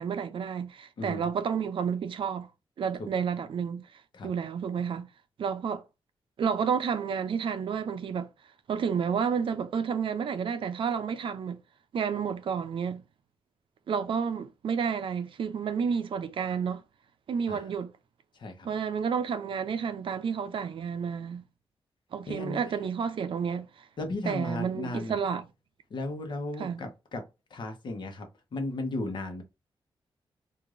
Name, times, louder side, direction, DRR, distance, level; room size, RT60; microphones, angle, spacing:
voice 1, 0.0-2.5 2.8-3.9 4.2-5.1 5.4-5.8 6.4-8.3 8.7-11.6 11.9-13.0 13.9-16.8 17.3-17.9 18.6-21.4 22.1-23.7 24.3-25.4 26.6-26.8, right 6 dB, 65° right, 0.5 m, -30 dB
voice 2, 1.0-1.3 3.0-3.1 4.1-4.3 17.5-17.7 18.3-18.7 22.3-22.6 24.0-25.2 25.9-27.2 27.5-29.4, left 2 dB, 55° left, 1.0 m, -35 dB
4.8 x 2.6 x 2.5 m
wide cardioid pair, 150°, 9 cm